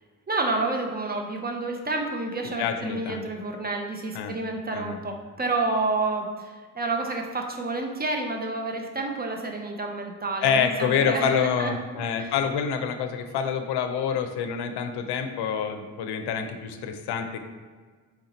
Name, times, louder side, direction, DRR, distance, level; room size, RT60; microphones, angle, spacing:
voice 1, 0.3-11.7 12.2-12.3, right 3 dB, 25° right, 2 dB, 0.7 m, -29 dB
voice 2, 2.6-3.3 4.1-4.4 4.7-5.0 10.4-17.4, left 7 dB, 85° left, 6 dB, 0.5 m, -27 dB
4.4 x 2.8 x 3.9 m, 1.5 s
cardioid pair, 65°, 38 cm